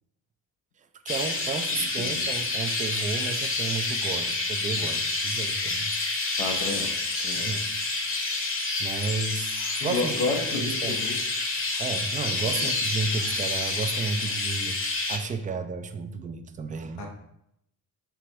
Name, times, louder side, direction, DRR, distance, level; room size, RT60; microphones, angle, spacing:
voice 1, 1.0-5.9 7.3-7.7 8.8-9.5 9.8-10.1 10.5-11.0 11.8-17.1, right 4 dB, 20° right, 8 dB, 0.4 m, -32 dB
Chirp tweet, 1.1-15.2, left 3 dB, 30° left, 1.0 m, -28 dB
voice 2, 1.8-2.2 6.4-6.9 7.2-7.5 9.8-11.2 12.5-12.7 17.0-17.1, left 3 dB, 75° left, 1 dB, 1.0 m, -31 dB
4.8 x 3.3 x 3.0 m, 0.78 s
hypercardioid pair, 45°, 46 cm